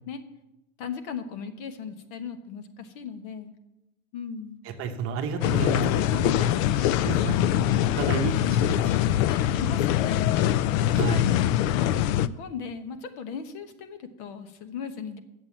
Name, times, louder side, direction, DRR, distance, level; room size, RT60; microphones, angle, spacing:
voice 1, 0.8-3.5 4.1-4.6 9.3-15.2, left 6 dB, 55° left, 8 dB, 1.2 m, -37 dB
voice 2, 4.6-6.5 7.0-9.2 10.9-11.3, right 5 dB, 30° right, 4 dB, 0.9 m, -32 dB
sound 1, 5.4-12.3, left 12 dB, 75° left, 0.6 m, -23 dB
10.5 x 7.6 x 7.2 m, 0.94 s
supercardioid pair, 170°, 41 cm